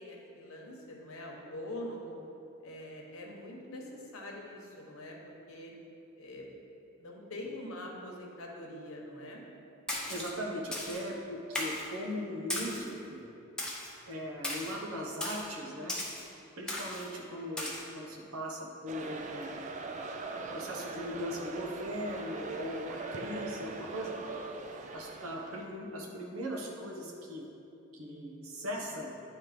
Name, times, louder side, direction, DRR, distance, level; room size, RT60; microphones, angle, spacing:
voice 1, 0.0-2.2 2.6-5.1 5.5-5.7 6.2-6.5 7.0-9.4, left 1 dB, 80° left, -1 dB, 1.1 m, -44 dB
Splash splatter, 9.9-10.3 10.7-11.0 11.6-11.9 12.5-12.9 13.6-13.9 14.4-14.7 15.2-15.4 15.9-16.2 16.7-17.0 17.6-17.8, left 1 dB, 5° left, 0.8 m, -36 dB
voice 2, 10.1-13.3 14.1-16.0 16.6-19.6 20.5-24.1 24.9-27.5 27.9-29.1, equal, 80° right, 0 dB, 1.0 m, -39 dB
sound 1, 18.9-25.7, right 3 dB, 35° right, 0.4 m, -41 dB
9.2 x 3.2 x 5.1 m, 2.8 s
head